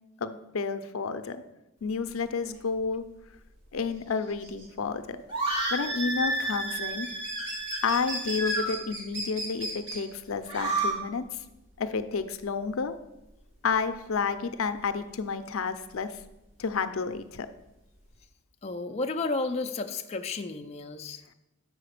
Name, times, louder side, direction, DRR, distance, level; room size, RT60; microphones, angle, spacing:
voice 1, 0.2-1.4 1.8-3.0 3.7-5.2 5.7-7.1 7.8-11.2 11.8-12.9 13.6-16.2 16.6-17.5, left 5 dB, 85° left, 11 dB, 0.5 m, -30 dB
sound 1, 1.9-18.2, right 1 dB, 65° right, 2.2 m, -40 dB
sound 2, 5.3-8.7 10.4-10.9, right 2 dB, 25° right, 1.7 m, -31 dB
voice 2, 18.6-21.2, left 3 dB, 30° left, 5 dB, 0.4 m, -32 dB
6.7 x 5.0 x 6.5 m, 0.92 s
head